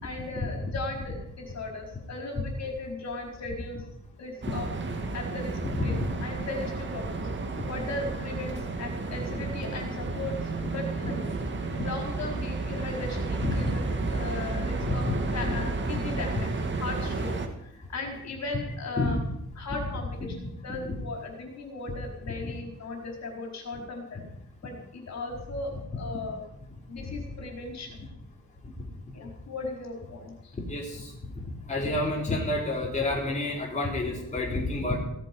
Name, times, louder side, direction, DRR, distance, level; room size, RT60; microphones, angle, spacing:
voice 1, 0.0-3.8 4.2-4.7 5.1-6.0 6.2-7.2 7.7-11.2 11.6-13.8 14.1-15.1 15.3-16.5 16.8-17.3 17.6-19.2 19.6-24.2 24.6-26.4 26.9-27.9 29.1-30.6, left 3 dB, 60° left, 1 dB, 4.5 m, -37 dB
sound 1, 4.4-17.5, right 3 dB, 40° right, 1.9 m, -32 dB
voice 2, 15.1-15.6 16.0-16.1 19.0-19.1 20.8-20.9 22.4-22.5 30.7-31.1 31.7-35.0, left 2 dB, 25° left, -3 dB, 3.8 m, -29 dB
17.0 x 14.5 x 5.4 m, 0.77 s
wide cardioid pair, 150°, 30 cm